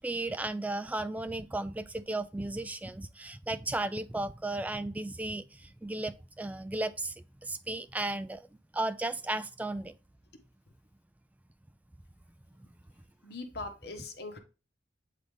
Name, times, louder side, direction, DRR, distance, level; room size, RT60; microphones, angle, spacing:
voice 1, 0.0-8.5 8.7-10.0 12.6-12.7, right 2 dB, 10° right, 0.3 m, -35 dB
voice 2, 13.2-14.4, left 2 dB, 60° left, 1.2 m, -41 dB
8.4 x 3.9 x 3.3 m
head